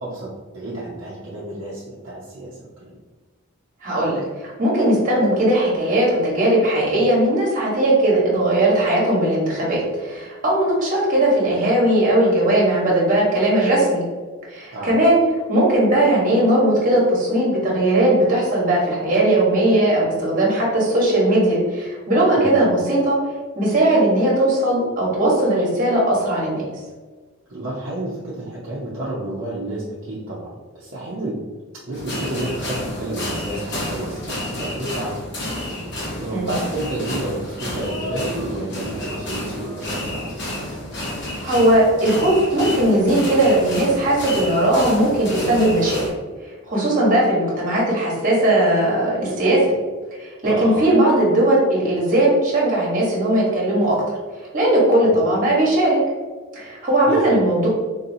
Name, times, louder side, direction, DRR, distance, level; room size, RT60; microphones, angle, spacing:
voice 1, 0.0-2.9 14.7-15.0 22.3-22.5 27.5-31.4 31.9-35.2 35.6-35.8 36.2-40.4 50.4-50.8 55.0-55.2 56.6-57.4, right 1 dB, 55° right, -8 dB, 0.7 m, -30 dB
voice 2, 3.8-14.0 14.5-15.2 15.5-23.2 23.5-26.6 36.3-36.5 41.4-46.0 46.7-49.6 50.2-54.2 54.5-56.0 56.5-57.7, right 1 dB, 40° right, -5 dB, 1.2 m, -18 dB
sound 1, 31.9-46.1, left 1 dB, 50° left, 1.0 m, -30 dB
4.0 x 2.7 x 2.7 m, 1.4 s
head